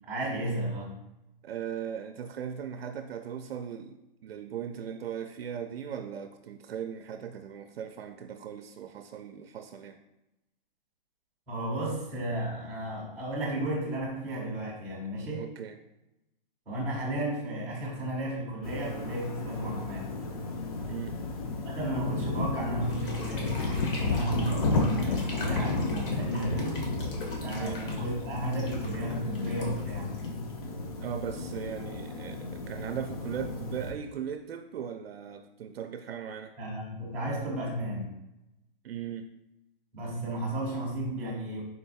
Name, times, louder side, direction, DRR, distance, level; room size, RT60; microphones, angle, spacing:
voice 1, 0.1-0.9 11.5-15.5 16.7-20.1 21.6-26.9 27.4-30.1 36.6-38.1 39.9-41.6, right 1 dB, 5° right, -8 dB, 0.5 m, -33 dB
voice 2, 1.4-10.0 15.4-15.8 20.9-21.1 27.6-27.8 31.0-36.5 38.8-39.3, right 8 dB, 85° right, 8 dB, 0.5 m, -38 dB
sound 1, 18.6-33.9, left 3 dB, 40° left, 0.5 m, -33 dB
sound 2, 22.8-30.8, left 2 dB, 65° left, 1.2 m, -43 dB
3.9 x 2.3 x 4.0 m, 0.92 s
hypercardioid pair, 160°, 29 cm